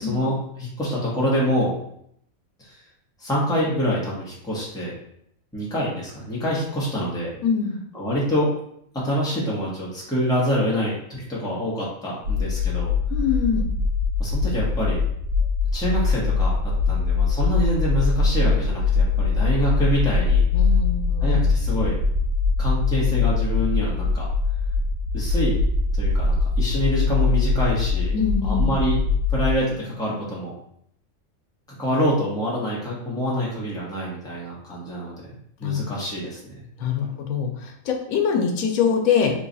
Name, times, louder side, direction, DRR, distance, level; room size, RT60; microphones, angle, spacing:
voice 1, 0.0-1.8 2.6-2.8 3.2-4.9 5.5-7.3 7.9-8.5 8.9-12.9 14.2-15.0 15.7-20.4 21.2-22.0 22.6-24.3 25.1-25.6 25.9-28.1 28.4-29.0 29.3-30.5 31.8-35.1 35.6-36.6 37.0-37.1, equal, 5° left, -6 dB, 0.8 m, -26 dB
voice 2, 7.4-7.8 13.1-13.6 19.7-19.9 20.5-21.4 28.1-28.7 35.6-35.8 36.8-39.3, left 6 dB, 85° left, 2 dB, 1.1 m, -24 dB
sound 1, 12.2-29.6, left 4 dB, 75° right, 1.0 m, -22 dB
3.2 x 2.3 x 3.9 m, 0.71 s
omnidirectional pair, 1.5 m